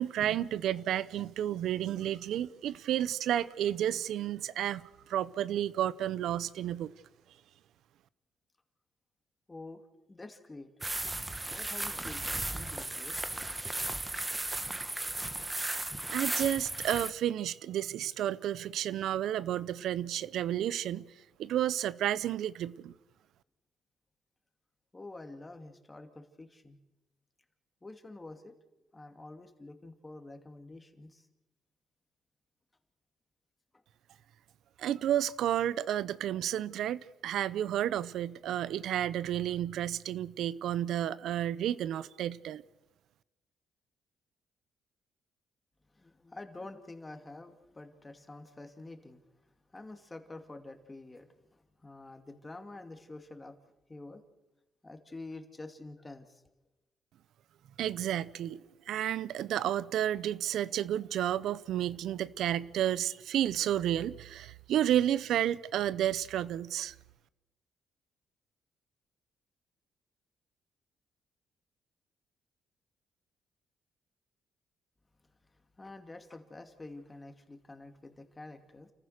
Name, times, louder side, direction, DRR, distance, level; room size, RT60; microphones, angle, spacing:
voice 1, 0.0-6.9 16.1-21.0 21.4-22.9 34.8-42.6 57.8-58.6 58.9-66.9, right 11 dB, 75° right, 0.6 m, -31 dB
voice 2, 9.5-9.8 10.1-10.7 11.5-13.2 24.9-26.8 27.8-28.5 28.9-31.3 45.9-49.2 49.7-53.6 53.9-54.2 54.8-56.4 75.8-78.9, left 2 dB, 20° left, 2.4 m, -48 dB
sound 1, 10.8-17.1, right 2 dB, 15° right, 1.3 m, -35 dB
29.5 x 14.5 x 6.6 m
cardioid pair, 90°, 0 cm